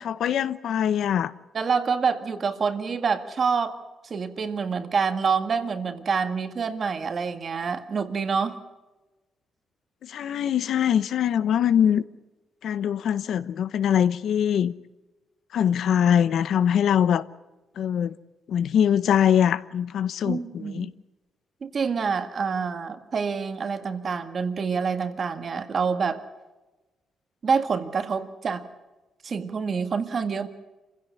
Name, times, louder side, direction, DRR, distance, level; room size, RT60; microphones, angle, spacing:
voice 1, 0.0-1.3 10.0-12.0 12.6-14.7 15.5-17.2 17.8-18.1 18.5-20.9, left 9 dB, 65° left, 0.8 m, -23 dB
voice 2, 1.5-3.8 4.1-8.6 20.3-20.9 21.6-26.2 27.4-28.6 29.2-30.5, right 5 dB, 40° right, 1.8 m, -27 dB
27.5 x 16.5 x 8.3 m
cardioid pair, 140°, 0 cm